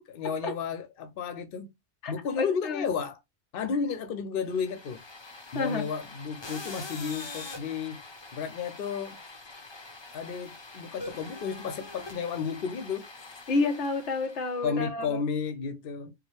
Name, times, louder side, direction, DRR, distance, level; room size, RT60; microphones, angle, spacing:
voice 1, 0.1-1.7 2.1-3.2 3.5-5.0 5.5-8.0 8.3-9.2 10.1-13.1 14.6-16.1, left 6 dB, 60° left, 0.8 m, -32 dB
voice 2, 2.0-2.9 5.5-5.9 13.5-15.2, left 3 dB, 85° left, 1.3 m, -29 dB
sound 1, 4.5-14.7, left 3 dB, 25° left, 0.8 m, -44 dB
4.7 x 2.2 x 3.0 m
omnidirectional pair, 1.1 m